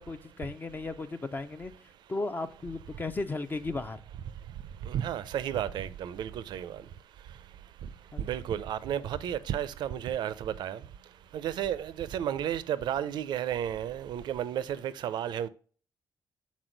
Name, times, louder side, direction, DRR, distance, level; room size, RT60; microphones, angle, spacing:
voice 1, 0.0-4.0 8.1-8.2, left 3 dB, 25° left, 0.4 m, -35 dB
voice 2, 4.8-6.7 8.3-10.8 11.4-15.5, right 10 dB, 80° right, 0.4 m, -32 dB
6.2 x 4.2 x 3.8 m
cardioid pair, 100°, 8 cm